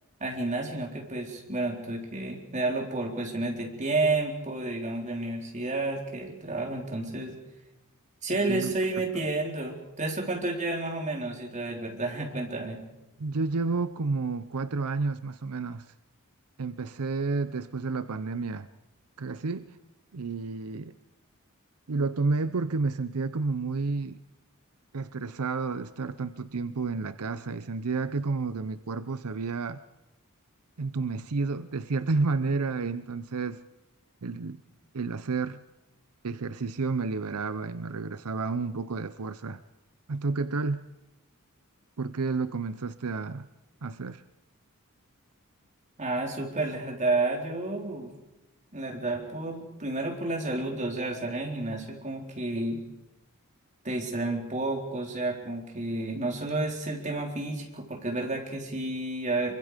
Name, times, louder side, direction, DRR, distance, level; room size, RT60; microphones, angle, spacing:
voice 1, 0.2-7.3 8.2-12.8 46.0-48.1 48.7-52.8 53.8-59.5, right 2 dB, 35° right, 0 dB, 4.2 m, -31 dB
voice 2, 13.2-15.9 16.6-18.7 19.2-19.8 20.1-20.9 21.9-24.2 24.9-29.8 30.8-33.6 34.2-34.6 34.9-35.6 36.2-39.6 40.1-40.9 42.0-43.5 43.8-44.2, right 4 dB, 85° right, 13 dB, 0.7 m, -30 dB
25.5 x 24.0 x 5.2 m, 0.96 s
head